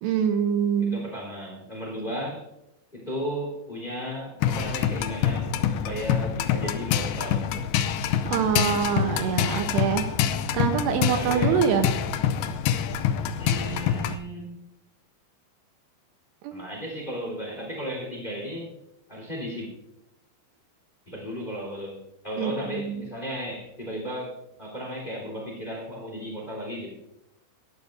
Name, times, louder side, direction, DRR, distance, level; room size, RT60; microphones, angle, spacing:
voice 1, 0.0-1.0 8.3-10.1 10.5-11.9 16.4-16.6 22.4-23.0, right 7 dB, 80° right, 6 dB, 2.9 m, -25 dB
voice 2, 0.8-2.4 2.9-7.5 11.0-11.6 13.4-14.6 16.5-18.8 19.1-19.7 21.1-22.0 22.2-26.9, equal, 10° left, 0 dB, 3.2 m, -35 dB
sound 1, 4.4-14.2, left 9 dB, 85° left, 2.2 m, -26 dB
18.0 x 12.5 x 2.6 m, 0.89 s
omnidirectional pair, 5.1 m